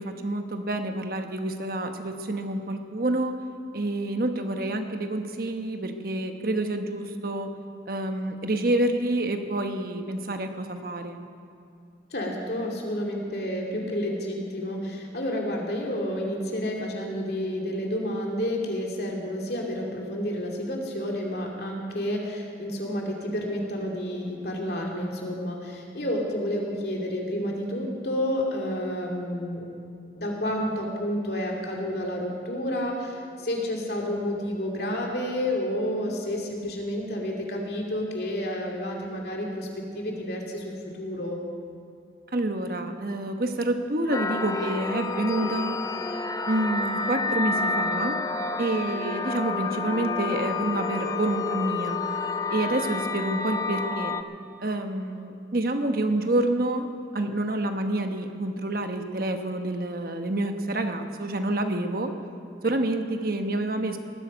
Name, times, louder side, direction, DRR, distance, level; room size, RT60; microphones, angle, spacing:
voice 1, 0.0-3.3 3.7-7.5 7.9-11.2 42.3-45.8 46.5-48.2 48.6-52.0 52.5-54.2 54.6-56.9 57.1-62.1 62.6-64.0, right 1 dB, 55° right, 6 dB, 1.1 m, -28 dB
voice 2, 12.1-29.7 30.1-39.7 39.9-41.4, equal, 60° left, -1 dB, 2.7 m, -30 dB
sound 1, 44.1-54.2, left 3 dB, 20° left, 0.5 m, -29 dB
19.0 x 12.5 x 5.2 m, 2.6 s
head